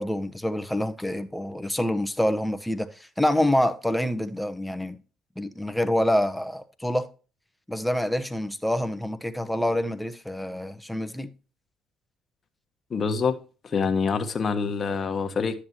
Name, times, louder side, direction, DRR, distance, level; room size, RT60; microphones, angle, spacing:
voice 1, 0.0-5.0 5.4-7.1 7.7-11.3, left 1 dB, 5° left, 1.0 m, -26 dB
voice 2, 12.9-13.3 13.6-15.6, left 5 dB, 45° left, 1.2 m, -26 dB
11.0 x 7.2 x 2.9 m
supercardioid pair, 65°, 0 cm